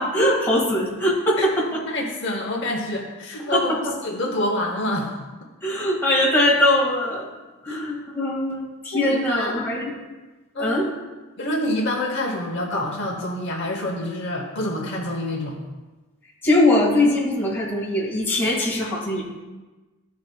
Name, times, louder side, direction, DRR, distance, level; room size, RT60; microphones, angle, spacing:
voice 1, 0.0-1.8 3.5-3.8 5.6-7.3 7.6-9.9 10.6-10.9 16.4-19.2, left 1 dB, 10° left, -6 dB, 1.8 m, -21 dB
voice 2, 1.9-3.7 4.0-5.1 7.7-7.8 8.9-9.5 10.5-10.9 11.4-15.6, left 1 dB, 55° left, 0 dB, 1.0 m, -27 dB
13.5 x 4.7 x 2.3 m, 1.2 s
head